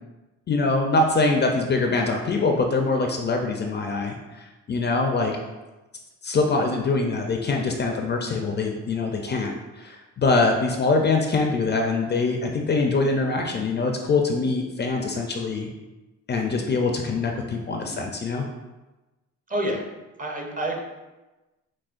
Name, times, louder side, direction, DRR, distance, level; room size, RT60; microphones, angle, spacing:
voice 1, 0.5-5.4 6.2-15.7 16.3-18.5, left 3 dB, 35° left, 2 dB, 0.4 m, -24 dB
voice 2, 19.5-19.8 20.2-20.8, right 1 dB, 25° right, 1 dB, 0.7 m, -27 dB
6.1 x 2.2 x 2.5 m, 1.1 s
cardioid pair, 90°, 30 cm